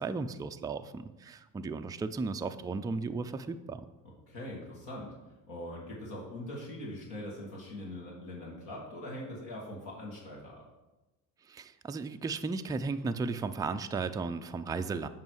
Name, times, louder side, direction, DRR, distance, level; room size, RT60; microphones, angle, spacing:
voice 1, 0.0-3.9 11.5-15.1, right 4 dB, 10° right, 8 dB, 0.3 m, -35 dB
voice 2, 4.3-5.2 5.5-10.6, left 1 dB, 70° left, -3 dB, 2.0 m, -42 dB
7.4 x 5.2 x 4.7 m, 1.1 s
hypercardioid pair, 60°, 44 cm